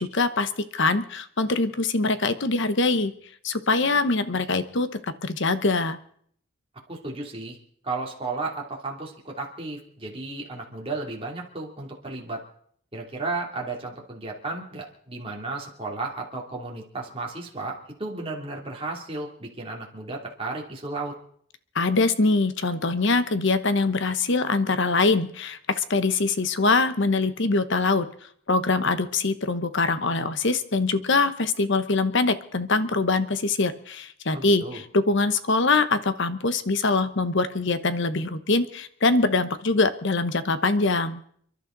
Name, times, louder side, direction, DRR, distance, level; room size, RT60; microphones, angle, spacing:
voice 1, 0.0-3.1 3.4-6.0 21.7-28.1 28.5-41.2, left 3 dB, 55° left, 12 dB, 1.0 m, -23 dB
voice 2, 6.9-7.6 7.8-12.4 12.9-21.1 34.3-34.8, right 3 dB, 25° right, -1 dB, 2.9 m, -34 dB
29.5 x 11.5 x 4.0 m, 0.63 s
head